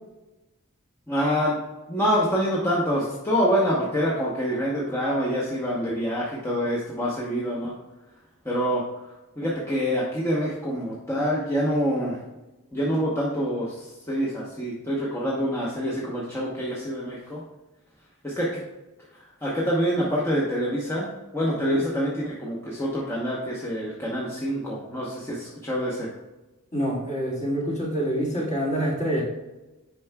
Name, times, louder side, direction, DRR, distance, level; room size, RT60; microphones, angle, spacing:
voice 1, 1.1-1.6 1.9-7.7 8.4-12.2 12.7-17.4 18.2-18.6 19.1-26.1, equal, 10° left, -6 dB, 0.9 m, -26 dB
voice 2, 26.7-29.2, equal, 35° left, -4 dB, 1.8 m, -26 dB
9.0 x 5.6 x 2.3 m, 1.1 s
head